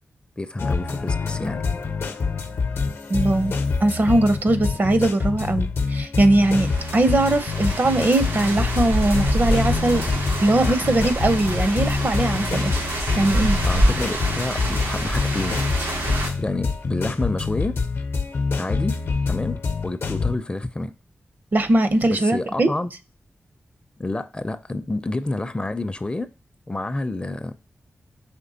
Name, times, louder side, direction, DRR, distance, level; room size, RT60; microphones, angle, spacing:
voice 1, 0.4-1.6 13.6-15.6 16.1-17.7 18.6-19.0 19.3-19.6 19.8-20.9 22.0-22.9 24.0-26.3 26.7-27.5, left 2 dB, 25° left, 0.4 m, -28 dB
sound 1, 0.6-20.4, left 4 dB, 70° left, 0.7 m, -26 dB
voice 2, 3.1-3.5 3.8-12.7 13.1-13.6 21.5-22.7, right 1 dB, 45° right, 0.6 m, -20 dB
sound 2, 6.4-16.3, right 1 dB, 90° right, 2.5 m, -26 dB
5.1 x 3.2 x 2.7 m
cardioid pair, 60°, 4 cm